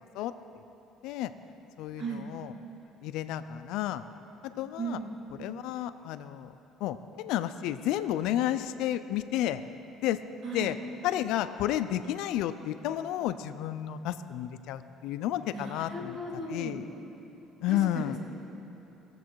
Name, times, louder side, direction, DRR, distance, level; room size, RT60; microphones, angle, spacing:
voice 1, 1.8-2.5 3.0-4.0 4.6-5.0 5.4-6.5 6.8-9.6 10.0-10.2 10.5-10.8 11.0-16.2 16.5-16.8 17.6-18.2, left 12 dB, 70° left, 11 dB, 0.4 m, -31 dB
voice 2, 4.8-5.1 10.4-10.7 15.5-16.8 17.7-18.2, right 3 dB, 40° right, -2 dB, 2.1 m, -36 dB
19.5 x 7.5 x 4.6 m, 3.0 s
cardioid pair, 150°, 0 cm